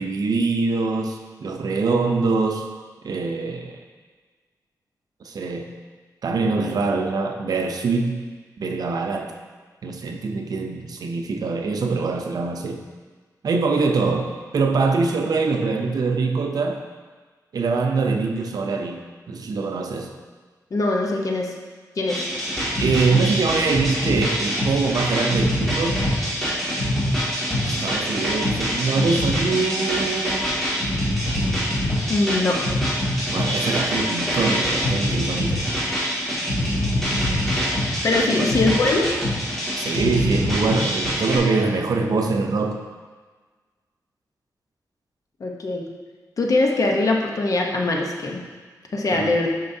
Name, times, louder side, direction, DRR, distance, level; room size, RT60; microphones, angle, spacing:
voice 1, 0.0-2.7 3.0-3.8 5.2-5.7 6.2-8.2 8.6-9.3 9.8-12.8 13.4-16.8 17.5-20.1 22.8-26.1 27.7-30.5 33.3-35.7 38.2-38.6 39.8-42.8 49.1-49.3, right 4 dB, 65° right, 4 dB, 0.6 m, -23 dB
voice 2, 20.7-21.5 22.0-22.2 32.1-32.6 38.0-39.1 45.4-45.9 46.4-48.4 48.9-49.5, left 2 dB, 55° left, 1 dB, 0.9 m, -22 dB
sound 1, 22.1-41.4, equal, 5° left, 2.1 m, -24 dB
8.7 x 5.5 x 2.7 m, 1.5 s
wide cardioid pair, 120°, 7 cm